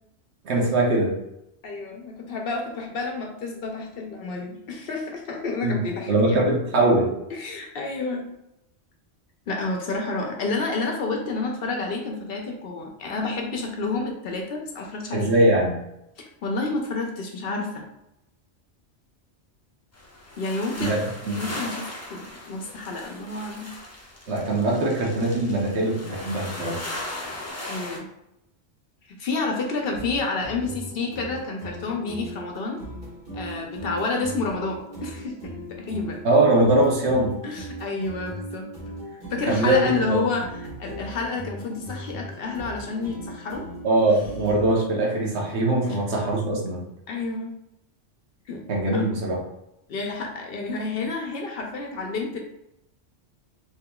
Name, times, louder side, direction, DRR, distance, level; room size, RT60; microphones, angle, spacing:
voice 1, 0.4-1.1 5.6-5.8 6.1-7.1 15.1-15.7 20.8-21.0 21.3-21.5 24.3-26.8 36.2-37.3 39.5-40.2 43.8-46.8 48.7-49.4, right 2 dB, 70° right, -2 dB, 1.1 m, -21 dB
voice 2, 1.6-6.4 7.3-8.3 9.5-15.3 16.2-17.9 20.4-21.0 21.4-23.7 27.7-28.1 29.1-32.8 33.3-36.2 37.4-38.7 39.1-40.5 40.8-43.7 45.8-46.0 47.1-47.5 48.5-48.6 48.9-49.1 49.9-52.4, left 3 dB, 65° left, 2 dB, 0.7 m, -30 dB
sound 1, 19.9-28.0, left 1 dB, 20° left, 0.4 m, -38 dB
sound 2, 29.8-44.8, equal, 50° right, 1.5 m, -39 dB
3.7 x 2.9 x 2.2 m, 0.87 s
omnidirectional pair, 1.2 m